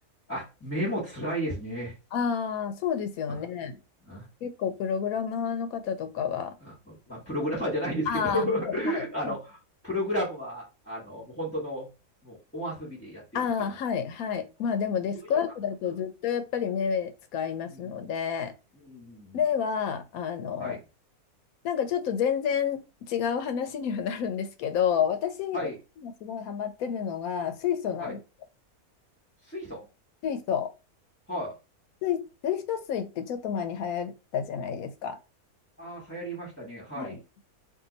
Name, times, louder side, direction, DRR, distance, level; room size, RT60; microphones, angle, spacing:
voice 1, 0.3-1.9 3.3-3.4 4.0-4.3 6.6-9.6 9.8-11.9 12.2-13.2 15.1-15.3 17.7-17.9 18.7-19.4 20.6-20.8 25.5-25.8 28.0-28.1 29.5-29.8 31.3-31.5 35.8-37.2, equal, 10° left, 1.2 m, -33 dB
voice 2, 2.1-3.8 4.4-6.5 8.1-9.3 13.3-18.5 19.3-20.8 21.6-25.7 26.0-28.2 30.2-30.7 32.0-35.2 37.0-37.4, left 7 dB, 75° left, 1.0 m, -30 dB
2.7 x 2.6 x 3.9 m
omnidirectional pair, 1.6 m